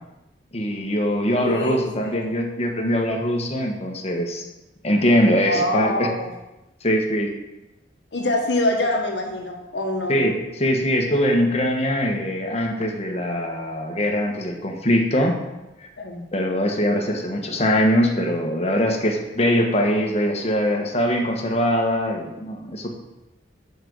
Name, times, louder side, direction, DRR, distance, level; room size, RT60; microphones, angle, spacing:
voice 1, 0.5-4.4 4.8-6.1 6.8-7.3 10.1-15.3 15.8-15.9 16.3-22.9, equal, 35° left, 2 dB, 1.3 m, -22 dB
voice 2, 1.4-2.2 5.4-6.3 8.1-10.2 16.0-16.2, left 1 dB, 80° left, 2 dB, 1.4 m, -25 dB
7.6 x 5.4 x 6.2 m, 0.98 s
head